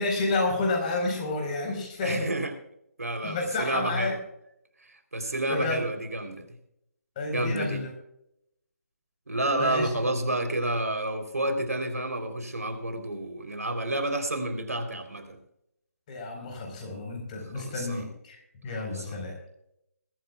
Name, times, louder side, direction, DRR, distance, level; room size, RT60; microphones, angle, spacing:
voice 1, 0.0-2.3 3.2-4.1 5.2-5.8 7.2-7.9 9.6-10.0 16.1-19.3, left 2 dB, 25° left, 2 dB, 4.3 m, -30 dB
voice 2, 2.0-2.5 3.0-4.2 4.9-6.6 7.3-7.8 9.3-15.4 17.5-18.0 18.8-19.1, right 1 dB, 65° right, 7 dB, 3.4 m, -30 dB
22.0 x 14.0 x 2.4 m, 0.77 s
figure-of-eight pair, 145°, 9 cm